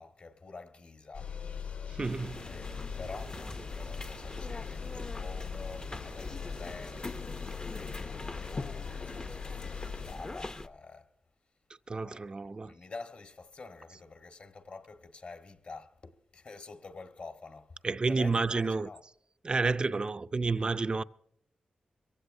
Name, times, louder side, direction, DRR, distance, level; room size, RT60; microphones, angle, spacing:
voice 1, 0.0-1.4 2.3-7.5 7.7-11.1 12.0-17.8 18.1-19.0, left 4 dB, 55° left, 1.4 m, -48 dB
sound 1, 1.1-10.1, left 6 dB, 80° left, 4.6 m, -41 dB
voice 2, 1.9-2.4 11.9-12.7 17.8-18.9 19.4-21.0, right 3 dB, 35° right, 0.4 m, -30 dB
sound 2, 2.0-10.7, left 2 dB, 30° left, 0.6 m, -42 dB
22.5 x 16.0 x 2.6 m
cardioid pair, 85°, 3 cm